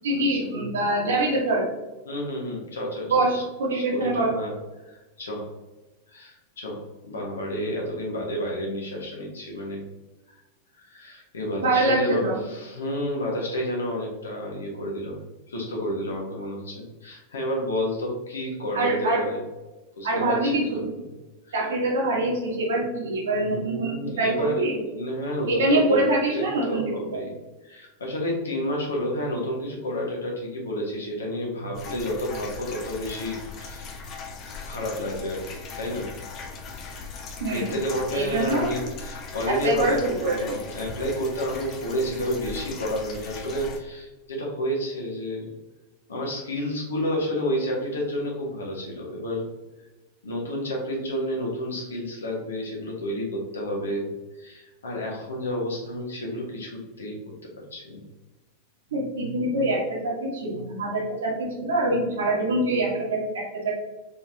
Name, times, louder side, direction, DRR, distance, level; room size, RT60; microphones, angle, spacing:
voice 1, 0.0-1.7 3.1-4.3 11.6-12.4 18.7-19.2 20.0-20.9 21.5-24.8 25.5-27.2 37.4-37.7 38.1-38.7 39.5-40.6 58.9-63.7, right 2 dB, 65° right, -2 dB, 1.4 m, -24 dB
voice 2, 2.0-3.4 3.7-4.5 4.8-5.5 6.1-9.8 10.3-10.4 10.7-15.2 15.5-19.4 20.0-21.1 21.4-21.7 23.4-24.6 24.9-26.0 26.3-27.3 27.6-33.9 34.7-36.1 37.5-40.0 40.3-45.5 46.1-49.5 50.2-54.1 54.4-57.2 57.4-58.0, equal, 70° left, -2 dB, 1.4 m, -30 dB
sound 1, 31.7-43.8, left 4 dB, 35° left, 0.7 m, -39 dB
4.4 x 3.8 x 2.8 m, 1.1 s
figure-of-eight pair, 90°, 0 cm